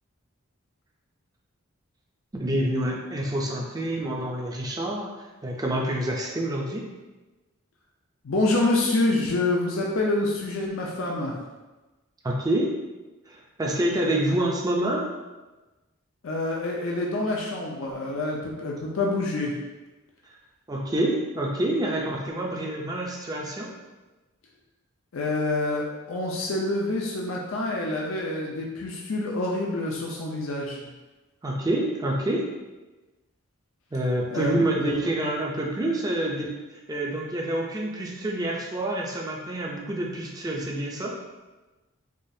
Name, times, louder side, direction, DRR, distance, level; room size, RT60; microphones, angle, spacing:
voice 1, 2.3-5.1 5.4-6.8 12.2-12.7 13.3-15.1 20.7-23.7 31.4-32.5 33.9-36.5 36.9-41.1, right 1 dB, 20° right, -1 dB, 0.5 m, -27 dB
voice 2, 8.2-11.4 16.2-19.6 25.1-30.9 34.3-34.5 34.8-35.0, left 2 dB, 65° left, -2 dB, 0.5 m, -27 dB
4.9 x 2.4 x 2.7 m, 1.1 s
head